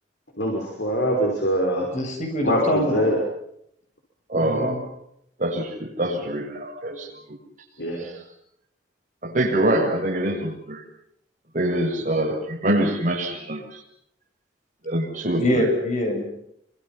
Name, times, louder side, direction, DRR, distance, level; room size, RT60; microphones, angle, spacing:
voice 1, 0.4-1.9 2.4-3.2 7.8-8.1, equal, 70° left, 0 dB, 5.9 m, -23 dB
voice 2, 1.9-3.0 4.4-4.8 15.4-16.3, equal, 45° left, 4 dB, 7.8 m, -24 dB
voice 3, 4.3-4.8 5.4-7.1 8.0-8.1 9.2-10.8 11.5-13.8 14.8-15.6, right 1 dB, 45° right, 1 dB, 7.0 m, -24 dB
29.5 x 26.0 x 5.8 m, 0.73 s
head